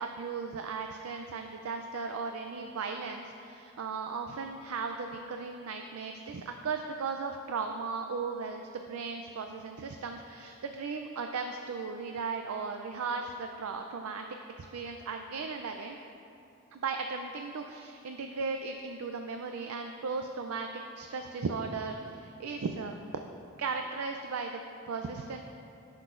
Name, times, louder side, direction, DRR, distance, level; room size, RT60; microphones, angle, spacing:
voice 1, 0.0-14.2 14.6-16.0 16.7-23.0 23.6-25.4, right 4 dB, 80° right, 4 dB, 0.4 m, -36 dB
16.0 x 5.9 x 2.5 m, 2.7 s
head